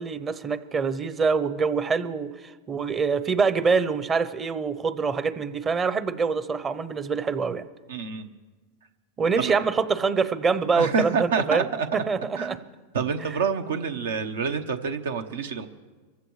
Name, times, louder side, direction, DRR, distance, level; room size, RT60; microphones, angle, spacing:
voice 1, 0.0-7.7 9.2-11.7 12.1-12.6, right 5 dB, 20° right, 13 dB, 0.7 m, -25 dB
voice 2, 7.9-8.3 9.4-9.6 10.7-12.0 12.4-12.6 12.9-15.7, right 5 dB, 85° right, 8 dB, 0.9 m, -27 dB
24.0 x 15.5 x 3.2 m, 1.3 s
supercardioid pair, 135°, 0 cm